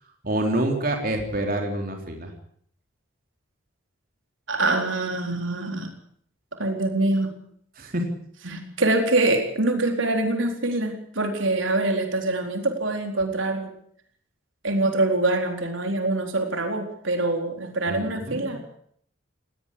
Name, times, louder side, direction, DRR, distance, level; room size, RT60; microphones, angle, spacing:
voice 1, 0.2-2.3 7.8-8.1 17.9-18.6, right 1 dB, 45° right, 3 dB, 3.9 m, -27 dB
voice 2, 4.5-5.9 6.6-7.3 8.4-13.7 14.6-18.8, right 2 dB, 80° right, 4 dB, 4.2 m, -24 dB
18.5 x 18.5 x 8.6 m, 0.64 s
head